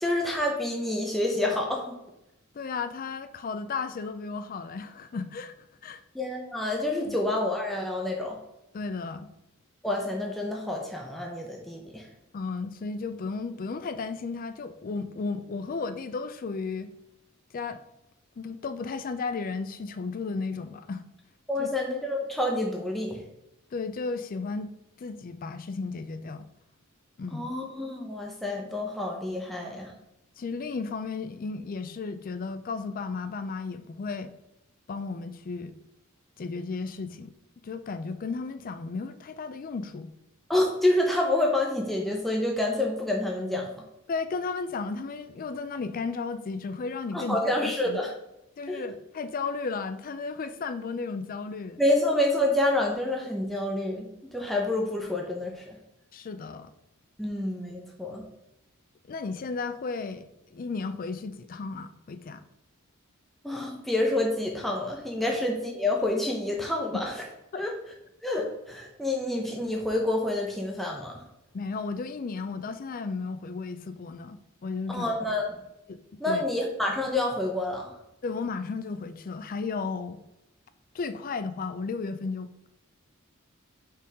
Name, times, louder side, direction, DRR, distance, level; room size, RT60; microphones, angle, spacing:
voice 1, 0.0-1.9 6.1-8.4 9.8-12.0 21.5-23.2 27.3-29.9 40.5-43.7 47.1-48.1 48.7-48.8 51.8-54.0 54.3-55.8 57.2-58.2 63.4-67.2 67.5-67.7 68.2-71.1 74.9-75.5 76.2-77.9, left 1 dB, ahead, -1 dB, 0.8 m, -28 dB
voice 2, 2.5-5.5 5.8-6.0 7.1-7.2 8.7-9.3 12.3-16.9 17.5-17.8 18.4-21.0 21.6-21.7 23.7-24.7 25.0-26.4 27.2-27.5 30.4-34.3 34.9-35.7 36.4-37.3 37.6-40.1 44.1-47.4 47.9-48.0 48.6-51.8 56.1-56.7 59.1-62.4 67.5-67.6 71.5-75.1 75.9-76.0 76.2-76.4 78.2-80.2 80.9-82.7, left 4 dB, 40° left, 10 dB, 0.4 m, -34 dB
5.4 x 4.6 x 4.7 m, 0.88 s
head